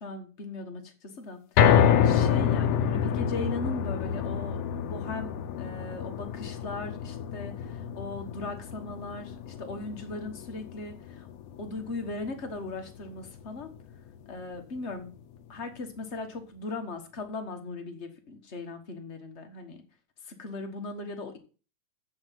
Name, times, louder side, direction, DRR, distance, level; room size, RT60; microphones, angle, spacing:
voice 1, 0.0-11.3 11.6-13.7 14.3-15.1 15.5-19.8 20.2-21.4, left 3 dB, 50° left, 6 dB, 0.8 m, -38 dB
sound 1, 1.6-13.8 14.2-14.3 14.8-14.9, left 8 dB, 70° left, 1.5 m, -28 dB
8.1 x 6.4 x 7.6 m, 0.36 s
omnidirectional pair, 3.4 m